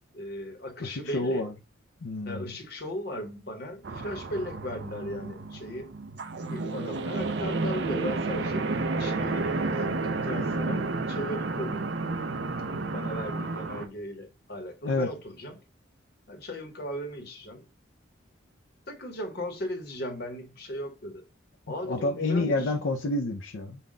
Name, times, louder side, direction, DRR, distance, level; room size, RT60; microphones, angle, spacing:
voice 1, 0.1-1.5 2.2-5.9 6.5-11.9 12.6-15.6 16.3-17.6 18.9-21.2 21.7-22.7, equal, 50° left, 1.0 m, -37 dB
voice 2, 0.8-1.5 2.0-2.5 14.8-15.1 21.8-23.8, left 2 dB, 75° left, 0.5 m, -28 dB
sound 1, 3.8-13.9, right 3 dB, 55° right, 0.5 m, -31 dB
5.6 x 2.3 x 3.6 m
head